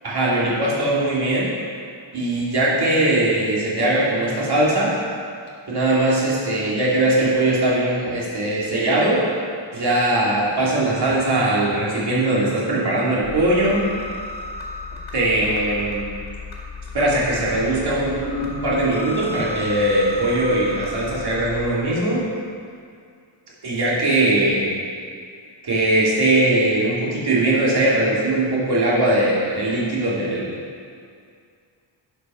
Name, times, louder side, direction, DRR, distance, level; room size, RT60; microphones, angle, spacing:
voice 1, 0.0-1.5 2.1-4.9 5.7-9.2 9.7-13.9 15.1-16.1 16.9-22.3 23.6-24.7 25.6-30.5, right 1 dB, 55° right, -7 dB, 2.6 m, -20 dB
sound 1, 13.2-21.7, left 2 dB, 55° left, 2.1 m, -34 dB
10.5 x 5.4 x 5.5 m, 2.3 s
wide cardioid pair, 155°, 45 cm